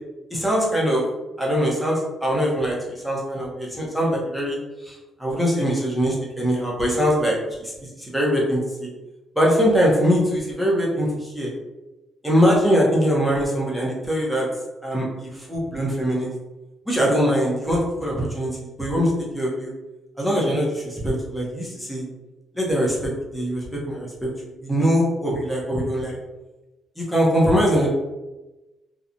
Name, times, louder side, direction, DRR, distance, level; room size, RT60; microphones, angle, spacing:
voice 1, 0.3-1.0 1.4-4.6 4.8-7.3 7.6-7.7 8.0-8.9 9.4-11.5 12.2-14.5 14.8-16.3 16.9-18.5 18.8-19.7 20.2-22.0 22.5-26.1 27.0-27.9, equal, ahead, -5 dB, 0.9 m, -22 dB
2.9 x 2.3 x 2.6 m, 1.1 s
cardioid pair, 90°, 0 cm